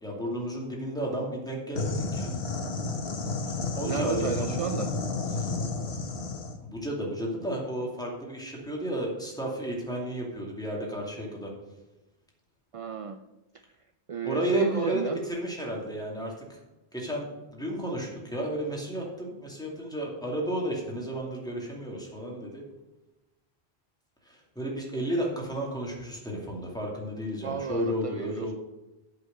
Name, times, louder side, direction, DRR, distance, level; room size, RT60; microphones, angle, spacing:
voice 1, 0.0-2.4 3.7-4.5 5.3-5.5 6.6-11.5 14.2-16.6 16.9-22.6 24.3-28.5, right 1 dB, 5° left, -2 dB, 2.6 m, -32 dB
sound 1, 1.8-6.6, left 3 dB, 70° left, 1.4 m, -31 dB
voice 2, 3.8-4.9 12.7-13.2 14.1-15.2 27.4-28.5, right 7 dB, 50° right, 8 dB, 0.4 m, -32 dB
8.1 x 6.0 x 7.7 m, 1.0 s
omnidirectional pair, 1.1 m